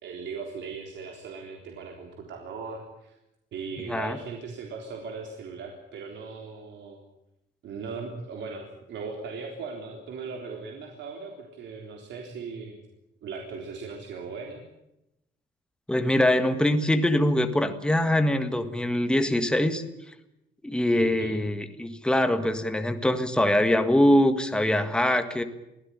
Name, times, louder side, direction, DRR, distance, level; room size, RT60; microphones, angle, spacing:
voice 1, 0.0-3.2 3.5-7.0 7.6-12.8 13.2-14.6 20.9-21.3, right 5 dB, 70° right, 2 dB, 3.8 m, -38 dB
voice 2, 15.9-19.8 20.6-25.4, left 1 dB, 5° left, 8 dB, 1.7 m, -23 dB
23.5 x 16.0 x 9.9 m, 0.87 s
cardioid pair, 160°, 19 cm